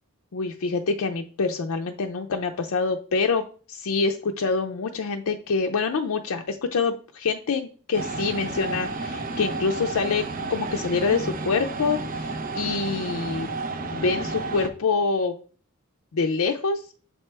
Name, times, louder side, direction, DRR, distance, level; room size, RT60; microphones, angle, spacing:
voice 1, 0.3-3.4 3.7-13.5 13.9-15.4 16.1-16.8, left 4 dB, 75° left, 4 dB, 0.5 m, -26 dB
sound 1, 7.9-14.7, right 3 dB, 40° right, 0.6 m, -31 dB
6.6 x 4.3 x 3.3 m, 0.41 s
head